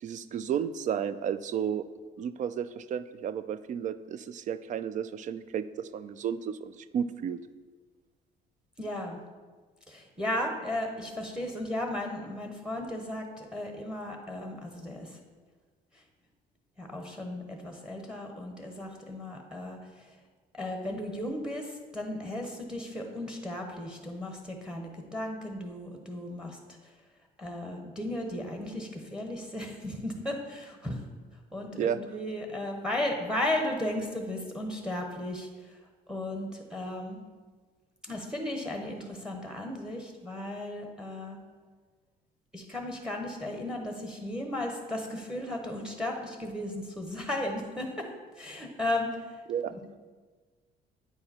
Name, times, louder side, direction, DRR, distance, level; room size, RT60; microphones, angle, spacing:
voice 1, 0.0-1.8 2.2-7.4 31.8-32.0 49.5-49.7, right 8 dB, 50° right, 14 dB, 0.4 m, -32 dB
voice 2, 8.8-9.2 9.9-15.2 15.9-16.0 16.8-20.1 20.5-26.8 27.4-31.0 31.5-35.8 36.1-37.2 38.0-41.4 42.5-48.1 48.3-49.4 49.7-50.0, left 1 dB, 5° right, 3 dB, 1.0 m, -35 dB
8.7 x 4.8 x 4.2 m, 1.4 s
cardioid pair, 110°, 17 cm